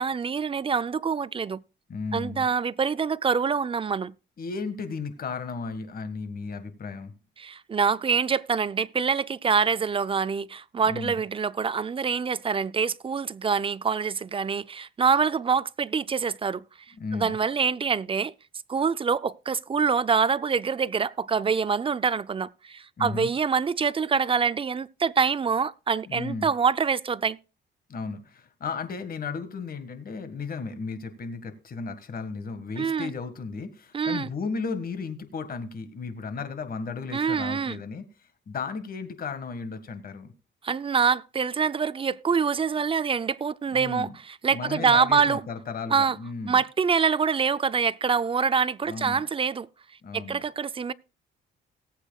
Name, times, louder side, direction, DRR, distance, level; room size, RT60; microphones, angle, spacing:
voice 1, 0.0-1.6 2.1-4.1 7.4-16.6 17.1-18.3 18.7-27.4 32.8-33.1 33.9-34.3 37.1-37.8 40.6-44.1 44.4-45.4 45.9-46.2 46.5-49.7 50.1-50.9, right 6 dB, 25° right, 0.4 m, -25 dB
voice 2, 1.9-2.5 4.4-7.1 10.9-11.2 17.0-17.4 23.0-23.3 26.0-26.5 27.9-38.0 38.5-40.3 43.7-44.1 44.5-46.6 48.8-49.2 50.0-50.4, left 4 dB, 50° left, 1.8 m, -34 dB
18.5 x 8.1 x 2.3 m
cardioid pair, 90°, 20 cm